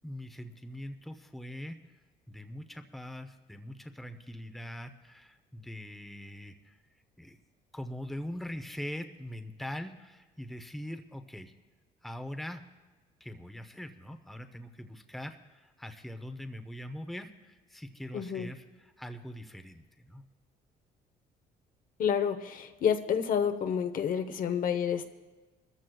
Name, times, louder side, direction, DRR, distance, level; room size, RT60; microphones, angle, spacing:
voice 1, 0.0-1.8 2.3-6.7 7.2-7.4 7.7-11.5 12.0-12.6 13.2-20.2, left 1 dB, ahead, 7 dB, 0.7 m, -42 dB
voice 2, 18.1-18.5 22.0-25.1, left 8 dB, 55° left, 7 dB, 0.9 m, -29 dB
23.0 x 14.0 x 2.3 m, 1.2 s
cardioid pair, 110°, 17 cm